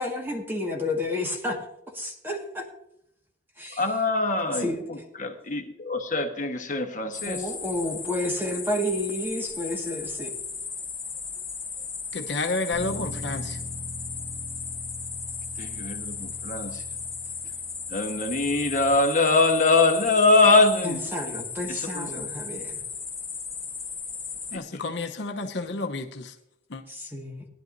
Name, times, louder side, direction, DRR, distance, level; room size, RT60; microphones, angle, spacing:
voice 1, 0.0-1.6 1.9-2.7 3.6-3.8 4.6-4.8 7.2-10.3 20.8-22.8 26.9-27.5, left 1 dB, 10° right, 1.7 m, -30 dB
voice 2, 3.7-7.4 15.6-16.8 17.9-21.0 21.7-22.1 24.5-24.6, left 3 dB, 45° left, 1.3 m, -23 dB
sound 1, 7.1-24.6, left 5 dB, 15° left, 1.1 m, -36 dB
voice 3, 12.1-13.6 24.5-26.3 26.7-26.8, left 3 dB, 70° left, 0.9 m, -30 dB
Bass guitar, 12.7-19.0, left 1 dB, 35° right, 1.9 m, -42 dB
19.0 x 10.5 x 2.6 m
head